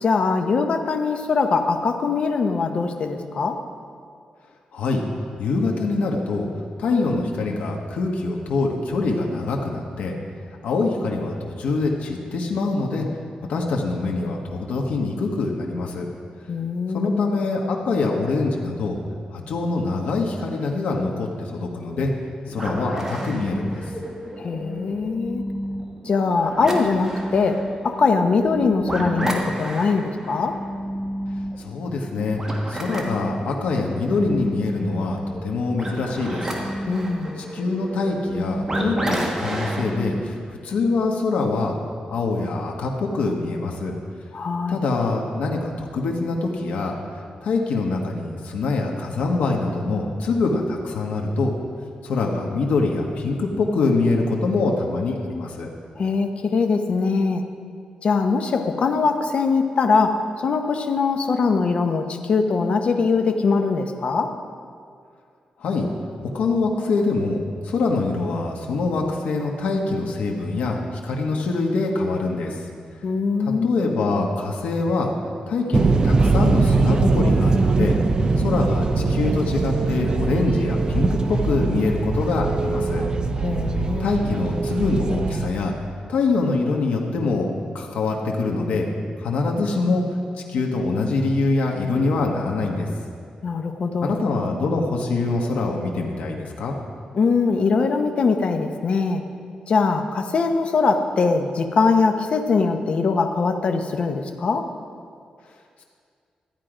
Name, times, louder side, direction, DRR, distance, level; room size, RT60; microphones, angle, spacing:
voice 1, 0.0-3.6 16.5-17.3 24.4-25.4 26.0-30.6 36.9-37.4 44.3-44.8 56.0-57.4 58.0-64.3 73.0-73.8 83.4-84.1 93.4-94.2 97.1-99.2 99.7-104.7, left 4 dB, 55° left, 5 dB, 0.9 m, -22 dB
voice 2, 4.7-5.1 5.4-6.5 6.8-10.1 10.6-13.0 13.5-16.1 16.9-19.0 19.3-22.1 22.5-23.8 31.6-32.4 32.7-36.5 37.4-41.7 42.1-43.9 44.7-51.5 52.0-55.7 65.6-65.9 66.2-72.6 73.4-75.1 75.5-78.0 78.4-83.0 84.0-85.7 86.1-87.5 87.7-88.9 89.2-90.0 90.5-92.9 94.0-96.7, left 3 dB, 85° left, 0 dB, 1.4 m, -24 dB
sound 1, 22.5-40.2, equal, 20° right, 1.6 m, -30 dB
sound 2, 75.7-85.5, right 3 dB, 35° right, 0.7 m, -21 dB
13.5 x 9.3 x 5.1 m, 2.2 s
wide cardioid pair, 120°, 2 cm